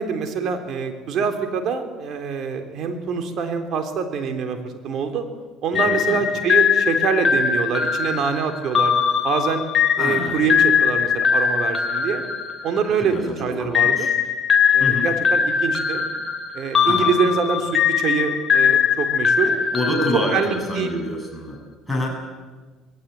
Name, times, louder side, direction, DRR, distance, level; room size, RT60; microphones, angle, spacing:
voice 1, 0.0-4.6 4.8-5.2 5.6-8.9 9.2-9.6 10.0-12.2 12.6-14.1 14.7-16.1 16.5-19.5 20.3-20.9, right 5 dB, 55° right, 6 dB, 3.5 m, -25 dB
sound 1, 5.7-13.2 13.7-21.0, left 7 dB, 30° left, 3.1 m, -21 dB
voice 2, 5.7-6.3 10.0-10.5 13.0-14.1 14.8-15.1 16.8-17.1 19.4-21.6 21.9-22.2, left 1 dB, ahead, 1 dB, 7.3 m, -27 dB
21.0 x 17.0 x 9.5 m, 1.4 s
supercardioid pair, 100°, 0 cm